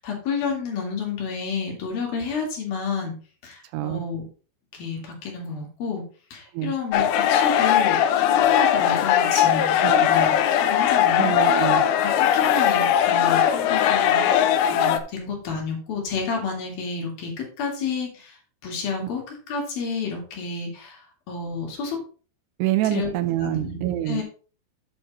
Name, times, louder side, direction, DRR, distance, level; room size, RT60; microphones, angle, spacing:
voice 1, 0.0-3.1 3.4-4.2 4.7-6.1 6.3-11.4 12.0-17.3 17.6-18.4 18.6-19.2 19.5-22.0 22.9-23.1 23.4-24.2, left 5 dB, 60° left, 0 dB, 3.8 m, -30 dB
voice 2, 3.7-4.0 6.5-6.7 9.8-10.1 11.2-11.8 22.6-24.2, right 15 dB, 80° right, 11 dB, 2.5 m, -26 dB
sound 1, 6.9-15.0, left 9 dB, 80° left, 2.9 m, -19 dB
8.9 x 6.3 x 4.1 m, 0.39 s
omnidirectional pair, 5.0 m